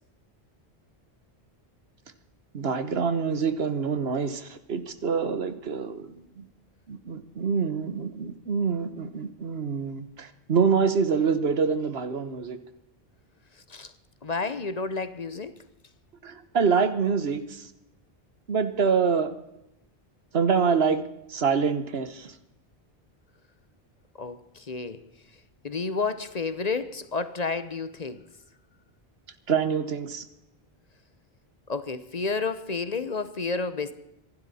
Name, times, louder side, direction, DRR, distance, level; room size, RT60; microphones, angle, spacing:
voice 1, 2.5-6.5 6.9-12.6 16.2-17.6 18.5-19.3 20.3-21.0 21.3-22.3 29.5-30.2, right 5 dB, 75° right, 11 dB, 1.4 m, -26 dB
voice 2, 14.2-15.5 24.2-25.0 25.6-28.2 31.7-33.9, left 4 dB, 45° left, 13 dB, 0.8 m, -30 dB
26.0 x 11.5 x 4.2 m, 0.86 s
omnidirectional pair, 1.1 m